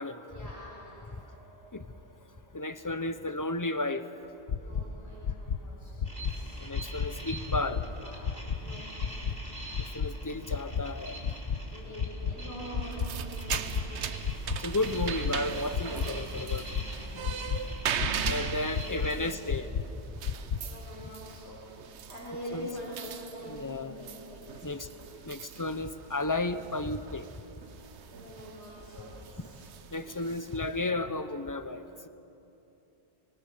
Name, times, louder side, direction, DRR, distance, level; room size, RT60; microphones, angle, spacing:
voice 1, 0.2-2.5 4.5-6.6 7.6-9.0 11.7-14.3 15.9-16.5 18.6-19.8 20.6-21.8 22.1-25.0 28.1-29.6, equal, 75° left, -5 dB, 4.9 m, -45 dB
voice 2, 2.5-4.1 6.6-7.8 8.7-8.8 9.9-11.2 14.6-16.7 18.3-19.7 22.5-22.7 23.5-23.9 24.6-24.9 25.3-27.3 29.9-32.1, left 2 dB, 20° left, 11 dB, 0.7 m, -33 dB
sound 1, 4.5-4.8 5.2-5.6 6.0-6.3 6.7-7.1 7.5-7.8 8.2-8.6 9.0-9.3 9.7-10.1 10.5-10.8 11.2-11.6 12.0-12.3 12.7-13.1 13.5-13.8 14.2-14.6 15.0-15.3 15.7-16.1 16.5-16.8 17.2-17.6 18.0-18.3 18.7-19.1 19.5-19.8 20.2-20.6, left 7 dB, 55° left, 1.0 m, -30 dB
sound 2, 6.0-19.1, right 1 dB, 45° right, 4.6 m, -45 dB
sound 3, 12.8-30.9, right 7 dB, 90° right, 1.1 m, -40 dB
26.0 x 21.5 x 6.8 m, 3.0 s
omnidirectional pair, 1.1 m